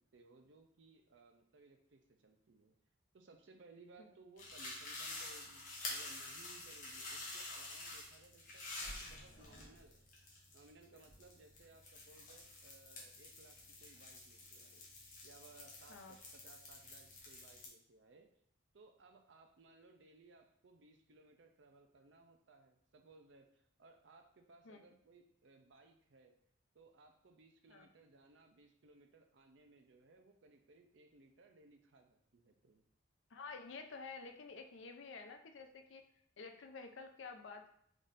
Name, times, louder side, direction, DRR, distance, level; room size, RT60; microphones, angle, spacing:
voice 1, 0.0-2.8 3.1-10.1 10.5-14.8 15.2-18.3 18.7-26.3 26.7-32.9, right 3 dB, 70° right, 4 dB, 0.5 m, -63 dB
Pop cream, 4.4-17.7, left 2 dB, 40° left, 1.0 m, -49 dB
voice 2, 33.3-36.0 36.4-37.7, left 4 dB, 75° left, 5 dB, 0.5 m, -50 dB
3.9 x 3.6 x 2.6 m, 0.67 s
head